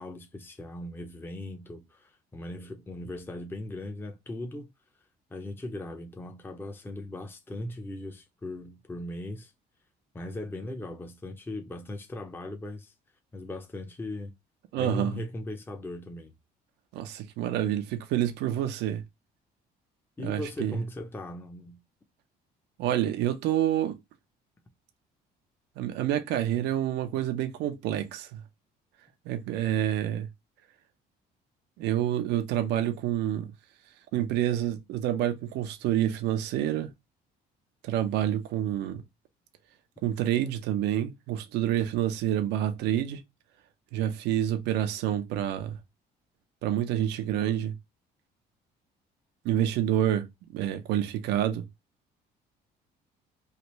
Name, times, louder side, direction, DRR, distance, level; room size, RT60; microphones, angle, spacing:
voice 1, 0.0-4.7 5.3-9.5 10.1-12.9 13.3-14.3 14.8-16.3 20.2-21.8, left 1 dB, 10° left, 0.6 m, -38 dB
voice 2, 14.7-15.2 16.9-19.0 20.2-20.8 22.8-24.0 25.8-28.4 29.3-30.3 31.8-33.5 34.1-36.9 37.8-39.0 40.0-43.2 43.9-45.8 46.6-47.7 49.4-51.6, right 11 dB, 85° right, 0.6 m, -28 dB
3.3 x 2.5 x 3.0 m
cardioid pair, 110°, 17 cm